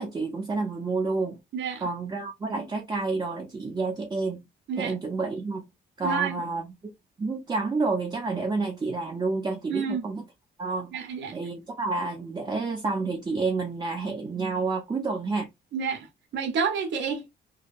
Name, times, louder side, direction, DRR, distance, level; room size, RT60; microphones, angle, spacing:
voice 1, 0.0-1.4 1.8-4.4 4.8-5.7 6.0-6.9 7.2-10.3 10.6-10.9 11.3-15.5, right 3 dB, 20° right, 0.5 m, -29 dB
voice 2, 1.5-1.9 4.7-4.9 6.0-6.4 9.7-10.0 10.9-11.4 15.7-16.1 16.3-17.3, right 6 dB, 65° right, 0.7 m, -29 dB
2.7 x 2.2 x 2.4 m
cardioid pair, 90°, 20 cm